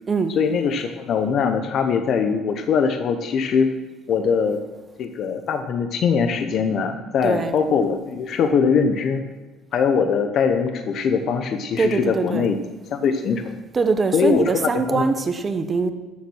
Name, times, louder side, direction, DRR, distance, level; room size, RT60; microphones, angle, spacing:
voice 1, 0.3-3.7 4.1-4.6 5.0-9.2 9.7-12.6 12.9-13.5 14.1-15.2, left 6 dB, 55° left, 7 dB, 0.9 m, -22 dB
voice 2, 7.2-7.5 11.8-12.5 13.7-15.9, right 4 dB, 30° right, 8 dB, 1.0 m, -22 dB
12.5 x 7.3 x 6.3 m, 1.2 s
cardioid pair, 115°, 0 cm